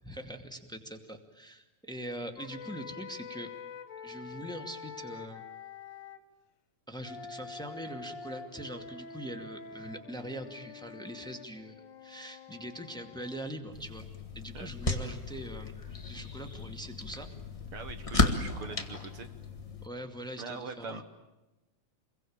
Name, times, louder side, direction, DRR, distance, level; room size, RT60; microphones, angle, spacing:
voice 1, 0.0-3.5 4.0-5.4 6.9-14.0 14.3-15.7 16.1-17.3 19.8-21.0, equal, ahead, 6 dB, 1.3 m, -42 dB
sound 1, 2.4-6.2 7.0-13.5, left 5 dB, 65° left, 2.9 m, -46 dB
sound 2, 13.7-19.9, left 2 dB, 20° left, 0.8 m, -34 dB
voice 2, 17.7-19.3 20.4-21.0, right 5 dB, 65° right, 9 dB, 1.4 m, -42 dB
28.0 x 23.0 x 8.8 m, 1.0 s
omnidirectional pair, 4.0 m